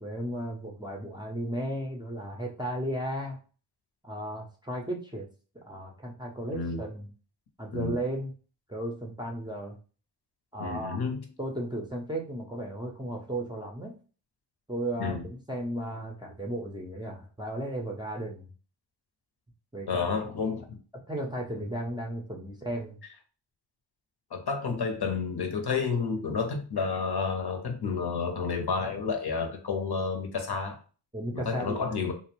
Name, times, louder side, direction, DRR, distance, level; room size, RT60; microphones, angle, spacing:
voice 1, 0.0-3.4 4.0-5.3 5.7-7.1 7.6-8.3 8.7-9.8 10.5-11.0 11.4-14.0 14.7-18.4 19.7-20.1 21.1-23.0 31.1-32.1, right 1 dB, 10° right, 0.6 m, -35 dB
voice 2, 6.5-6.8 7.7-8.0 10.6-11.2 15.0-15.2 19.9-20.8 24.3-30.8 31.3-32.1, left 5 dB, 50° left, 0.7 m, -30 dB
2.5 x 2.0 x 2.9 m
cardioid pair, 55°, 50 cm